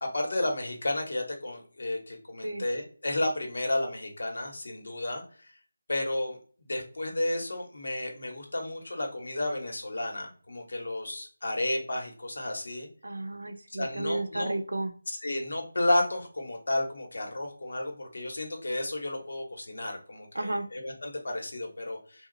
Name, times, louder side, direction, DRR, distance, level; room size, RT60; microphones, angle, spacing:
voice 1, 0.0-5.5 5.9-6.4 6.6-12.9 13.7-14.5 15.2-22.3, left 1 dB, 60° left, 2 dB, 1.1 m, -32 dB
voice 2, 13.0-14.9 20.3-20.7, right 2 dB, 85° right, 8 dB, 0.5 m, -32 dB
2.8 x 2.3 x 3.9 m, 0.42 s
figure-of-eight pair, 170°, 0 cm